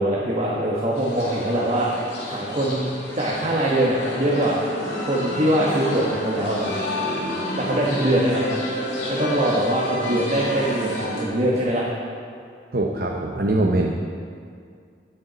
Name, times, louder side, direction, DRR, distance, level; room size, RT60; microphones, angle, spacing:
voice 1, 0.0-2.9 3.1-4.7 5.0-6.8 7.5-8.5 9.1-11.9, right 1 dB, 40° right, -4 dB, 1.2 m, -23 dB
sound 1, 0.9-11.2, left 1 dB, 80° left, 2.5 m, -30 dB
voice 2, 12.7-13.9, right 2 dB, 55° right, 0 dB, 0.7 m, -22 dB
17.5 x 6.7 x 4.0 m, 2.3 s
head